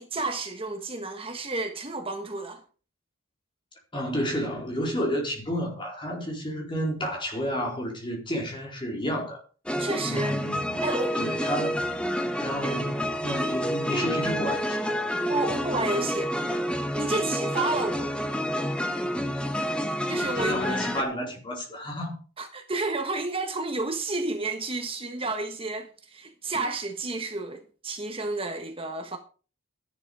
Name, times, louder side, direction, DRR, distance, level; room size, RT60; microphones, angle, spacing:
voice 1, 0.0-2.6 9.8-10.4 10.8-11.1 12.6-12.8 15.3-16.3 16.9-18.2 20.1-20.9 22.4-29.2, right 3 dB, 25° right, 1.4 m, -31 dB
voice 2, 3.9-9.4 10.0-10.8 11.1-11.9 12.4-15.1 20.2-22.2, equal, 25° left, 4.3 m, -31 dB
sound 1, 9.7-21.0, equal, 5° left, 1.0 m, -28 dB
13.0 x 11.0 x 4.9 m
head